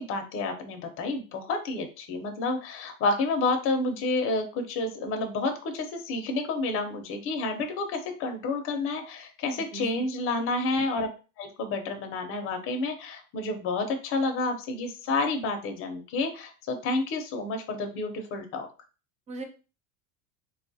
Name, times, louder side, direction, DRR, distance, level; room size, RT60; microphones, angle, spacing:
voice 1, 0.0-11.1 11.4-18.7, left 3 dB, 35° left, 4 dB, 0.6 m, -30 dB
voice 2, 9.5-10.1 19.3-19.4, right 4 dB, 20° right, 6 dB, 0.5 m, -39 dB
3.4 x 2.3 x 2.6 m, 0.33 s
supercardioid pair, 135°, 38 cm